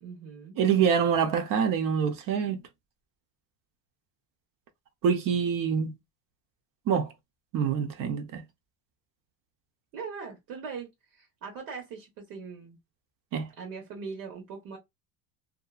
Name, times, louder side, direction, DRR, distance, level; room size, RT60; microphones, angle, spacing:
voice 1, 0.0-0.6 9.9-12.8 13.6-14.8, right 5 dB, 80° right, 1.3 m, -40 dB
voice 2, 0.6-2.6 5.0-5.9 6.9-7.1 7.5-8.4 13.3-13.5, right 7 dB, 50° right, 0.7 m, -25 dB
2.8 x 2.5 x 2.4 m
cardioid pair, 125°, 44 cm